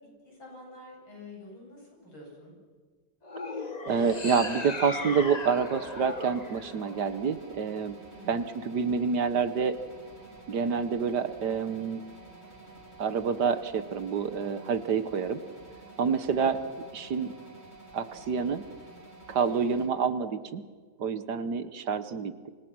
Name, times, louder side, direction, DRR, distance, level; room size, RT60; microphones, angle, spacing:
voice 1, 0.2-2.5 8.1-8.4 16.4-16.8, left 1 dB, 85° left, -1 dB, 9.0 m, -48 dB
sound 1, 3.2-7.6, left 3 dB, 20° left, 1.4 m, -37 dB
sound 2, 3.9-19.9, right 3 dB, 30° right, 3.1 m, -50 dB
voice 2, 3.9-8.0 8.3-9.8 10.5-12.0 13.0-15.4 16.0-16.6 16.9-17.3 17.9-18.6 19.3-20.6 21.0-22.5, right 6 dB, 60° right, 12 dB, 1.5 m, -28 dB
29.0 x 25.5 x 6.2 m, 1.5 s
omnidirectional pair, 2.2 m